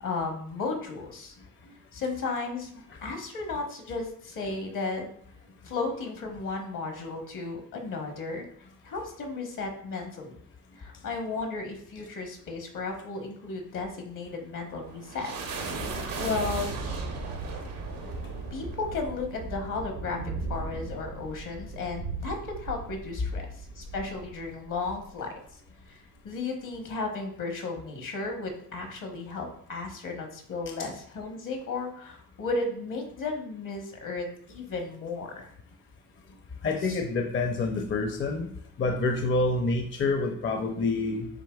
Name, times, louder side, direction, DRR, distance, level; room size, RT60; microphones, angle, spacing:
voice 1, 0.0-1.3 1.9-5.1 5.6-8.4 8.8-10.4 10.8-15.5 15.8-16.7 18.5-20.2 20.5-25.3 25.9-35.5 36.8-37.0, left 3 dB, 65° left, 3 dB, 1.2 m, -34 dB
sound 1, 14.4-25.1, right 3 dB, 85° right, 1.0 m, -37 dB
voice 2, 36.6-38.5 38.8-41.3, left 3 dB, 35° left, 4 dB, 0.6 m, -27 dB
7.6 x 2.9 x 2.3 m, 0.64 s
cardioid pair, 75°, 34 cm